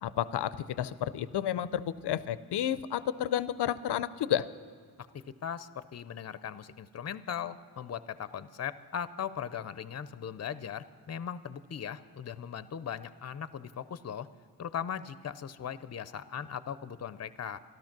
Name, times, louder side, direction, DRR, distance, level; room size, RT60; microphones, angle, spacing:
voice 1, 0.0-4.5, left 10 dB, 90° left, 16 dB, 0.5 m, -31 dB
voice 2, 5.1-14.3 14.6-17.6, left 8 dB, 40° left, 15 dB, 0.5 m, -39 dB
13.5 x 12.5 x 6.0 m, 2.1 s
cardioid pair, 60°, 39 cm